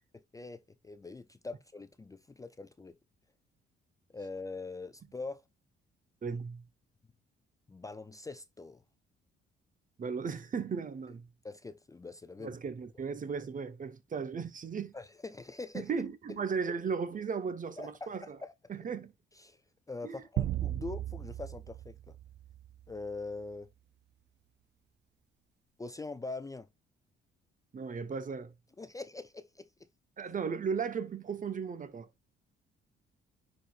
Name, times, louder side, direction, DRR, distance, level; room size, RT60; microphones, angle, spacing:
voice 1, 0.3-3.0 4.1-5.4 6.3-6.4 7.7-8.8 11.4-12.5 14.9-15.9 16.3-16.4 17.8-18.1 18.4-18.5 19.3-19.6 19.9-22.2 22.9-23.7 25.8-26.7 28.8-29.7, left 3 dB, 15° left, 0.5 m, -43 dB
voice 2, 6.2-6.6 10.0-11.3 12.4-14.9 15.7-18.4 18.7-19.1 20.0-20.2 27.7-28.5 30.2-32.1, right 5 dB, 40° right, 1.2 m, -36 dB
sound 1, 20.4-22.9, right 13 dB, 60° right, 0.4 m, -36 dB
10.0 x 4.3 x 2.5 m
cardioid pair, 90°, 20 cm